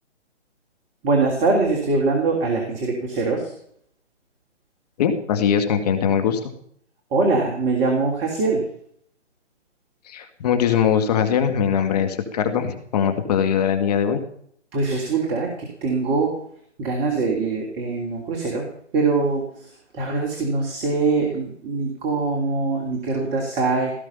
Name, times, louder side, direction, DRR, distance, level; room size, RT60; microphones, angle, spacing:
voice 1, 1.0-3.5 7.1-8.6 14.7-16.3 16.8-18.7 18.9-23.9, right 3 dB, 20° right, 0 dB, 3.0 m, -23 dB
voice 2, 5.0-6.5 10.1-14.2, left 8 dB, 35° left, 7 dB, 2.0 m, -21 dB
17.5 x 14.5 x 5.7 m, 0.65 s
figure-of-eight pair, 145°, 36 cm